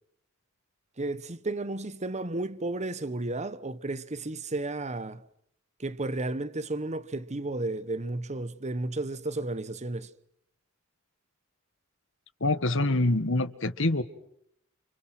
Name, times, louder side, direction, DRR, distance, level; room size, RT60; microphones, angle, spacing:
voice 1, 1.0-5.2 5.8-10.1, right 2 dB, 35° right, 1.1 m, -33 dB
voice 2, 12.4-14.0, left 2 dB, 65° left, 1.7 m, -25 dB
30.0 x 29.5 x 6.1 m
head